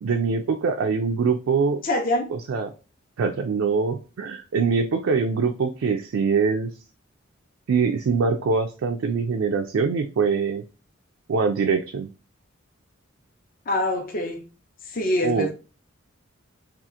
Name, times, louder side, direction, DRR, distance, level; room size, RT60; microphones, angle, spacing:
voice 1, 0.0-1.8 2.3-2.7 3.2-6.7 7.7-10.6 11.3-12.1 15.2-15.5, right 5 dB, 75° right, 0.4 m, -23 dB
voice 2, 1.8-2.3 13.7-14.4 14.9-15.5, left 1 dB, 45° left, 0.6 m, -24 dB
2.8 x 2.4 x 3.5 m
head